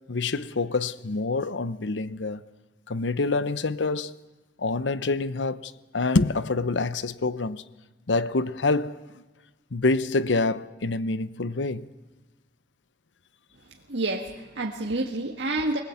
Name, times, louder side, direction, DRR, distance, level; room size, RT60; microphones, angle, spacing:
voice 1, 0.1-2.4 2.9-4.2 4.6-7.6 8.1-9.0 9.7-11.9, left 3 dB, 80° left, 0.8 m, -26 dB
voice 2, 13.9-15.8, right 2 dB, 75° right, 1.7 m, -28 dB
21.5 x 20.5 x 8.6 m
head